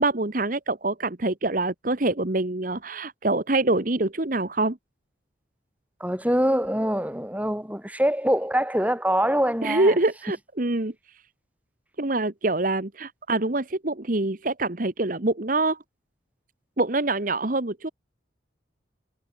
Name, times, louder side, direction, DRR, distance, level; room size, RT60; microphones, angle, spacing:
voice 1, 0.0-4.8 9.6-10.9 12.0-15.8 16.8-17.9, right 2 dB, 45° right, 1.3 m, -25 dB
voice 2, 6.0-10.0, equal, 10° right, 4.9 m, -24 dB
head